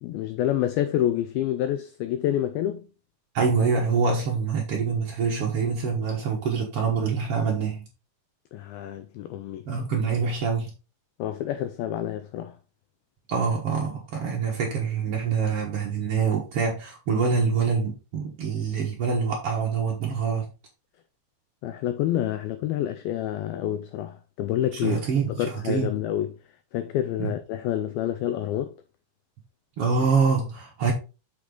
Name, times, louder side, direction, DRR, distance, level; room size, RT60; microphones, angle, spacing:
voice 1, 0.0-2.9 8.5-9.7 11.2-12.6 21.6-25.0 25.3-26.4 26.7-28.8, left 12 dB, 85° left, 2.1 m, -28 dB
voice 2, 3.3-7.8 9.6-10.7 13.3-20.5 24.7-25.9 27.2-27.3 29.8-30.9, right 5 dB, 85° right, 1.2 m, -25 dB
6.6 x 6.0 x 3.8 m
omnidirectional pair, 4.9 m